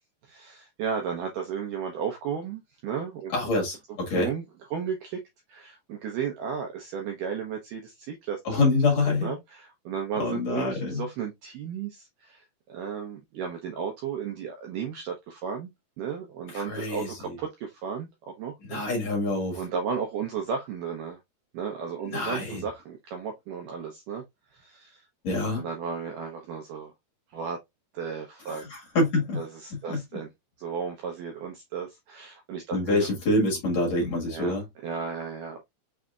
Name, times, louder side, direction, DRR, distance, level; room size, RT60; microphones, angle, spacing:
voice 1, 0.2-3.3 4.1-4.4 4.7-5.2 5.5-8.4 9.1-15.7 16.0-18.8 19.5-21.2 21.5-24.2 24.5-25.1 25.5-26.9 27.3-27.6 27.9-28.6 29.4-30.3 30.6-33.1 34.3-34.6 34.8-35.6, right 7 dB, 75° right, 2.0 m, -34 dB
voice 2, 3.3-4.3 8.4-9.4 10.2-11.0 16.5-17.4 18.7-19.6 22.0-22.6 25.2-25.6 28.5-29.4 29.9-30.2 32.7-34.7, left 2 dB, 50° left, 2.7 m, -26 dB
6.3 x 3.4 x 2.4 m
omnidirectional pair, 4.8 m